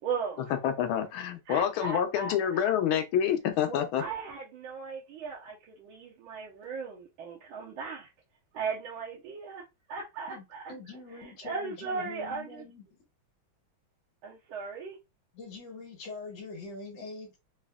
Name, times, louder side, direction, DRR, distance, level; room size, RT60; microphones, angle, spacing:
voice 1, 0.0-0.5 1.5-2.6 4.0-8.1 8.5-9.6 9.9-10.6 11.2-12.6 14.2-15.0, right 5 dB, 75° right, 1.6 m, -37 dB
voice 2, 0.6-4.0, left 9 dB, 85° left, 1.5 m, -27 dB
voice 3, 10.3-13.0 15.3-17.4, left 2 dB, 70° left, 1.7 m, -43 dB
4.1 x 2.7 x 2.3 m
omnidirectional pair, 2.3 m